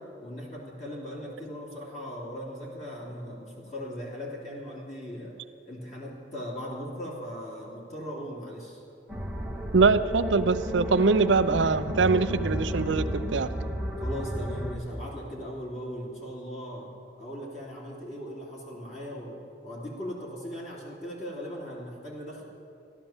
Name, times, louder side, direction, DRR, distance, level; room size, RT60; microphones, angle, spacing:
voice 1, 0.0-5.3 5.6-8.8 14.0-16.9 17.2-22.4, equal, 40° left, -4 dB, 2.8 m, -38 dB
sound 1, 9.1-14.7, equal, 5° right, 1.0 m, -32 dB
voice 2, 9.7-13.5, right 4 dB, 85° right, 12 dB, 0.6 m, -23 dB
14.5 x 12.0 x 7.2 m, 2.6 s
head